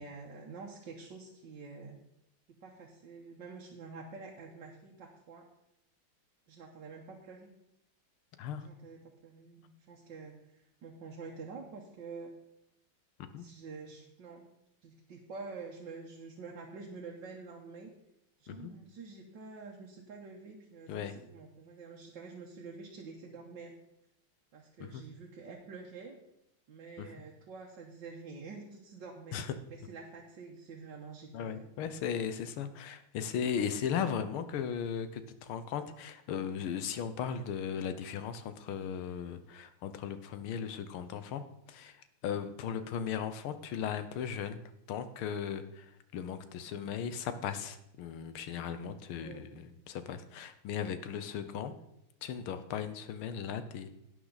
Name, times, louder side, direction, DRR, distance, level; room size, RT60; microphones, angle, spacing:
voice 1, 0.0-2.0 2.5-5.5 6.5-7.5 8.6-12.3 13.4-14.5 14.8-17.9 18.4-23.7 24.5-26.2 26.7-29.4 29.7-31.7 42.7-42.8 46.7-46.9 49.1-49.5, right 4 dB, 65° right, -1 dB, 1.8 m, -48 dB
voice 2, 31.3-41.4 41.7-42.0 42.2-44.6 44.9-45.9 46.1-51.7 52.2-53.9, left 8 dB, 90° left, 11 dB, 1.7 m, -37 dB
11.5 x 9.3 x 4.0 m, 0.82 s
omnidirectional pair, 2.3 m